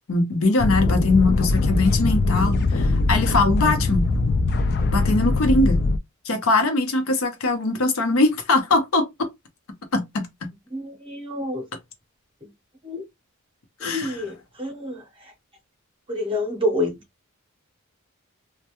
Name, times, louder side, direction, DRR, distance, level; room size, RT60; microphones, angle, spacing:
voice 1, 0.1-4.1 4.9-5.8 6.3-9.1 9.9-10.5 13.8-14.2, left 2 dB, 70° left, 0.7 m, -21 dB
sound 1, 0.6-6.0, left 3 dB, 45° left, 0.3 m, -21 dB
voice 2, 10.7-11.6 12.4-12.5 12.8-13.0 13.8-15.3 16.1-17.0, left 1 dB, 25° right, 0.7 m, -28 dB
2.2 x 2.2 x 2.9 m
head